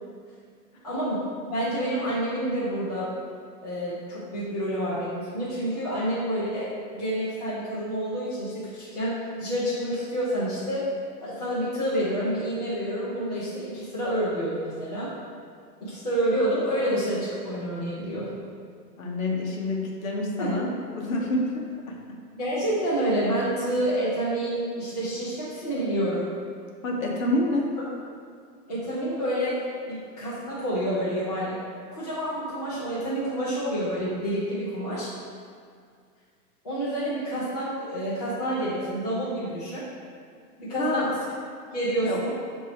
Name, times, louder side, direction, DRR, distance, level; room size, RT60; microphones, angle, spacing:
voice 1, 0.8-1.2 1.5-3.1 3.6-10.8 11.2-15.1 15.8-18.4 20.4-20.7 22.4-26.3 28.7-29.5 29.9-31.6 31.9-35.1 36.6-39.8 40.6-41.2 41.7-42.4, right 1 dB, 25° left, -11 dB, 0.5 m, -28 dB
voice 2, 19.0-22.2 26.8-27.7 40.8-41.1 42.0-42.2, left 2 dB, 55° left, -1 dB, 0.8 m, -28 dB
5.5 x 2.6 x 3.3 m, 2.1 s
hypercardioid pair, 175°, 48 cm